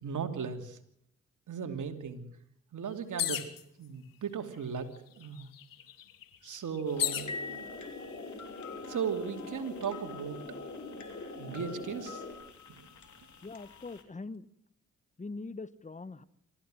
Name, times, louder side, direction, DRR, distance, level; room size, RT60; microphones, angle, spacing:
voice 1, 0.0-0.8 1.5-2.2 2.7-3.5 3.8-4.9 5.2-5.5 6.4-7.3 8.9-10.6 11.4-12.2 12.7-12.9, right 7 dB, 65° right, 6 dB, 2.9 m, -36 dB
sound 1, 3.2-3.6 4.5-4.6 4.9-7.3 8.1-8.6, left 12 dB, 80° left, 1.8 m, -34 dB
Spooky music box radio broadcast, 6.9-14.0, left 4 dB, 60° left, 3.6 m, -48 dB
sound 2, 6.9-12.3, left 2 dB, 40° left, 7.0 m, -43 dB
voice 2, 13.4-14.5 15.2-16.2, left 3 dB, 20° left, 16 dB, 1.2 m, -42 dB
25.5 x 14.5 x 7.8 m, 0.73 s
supercardioid pair, 50°, 33 cm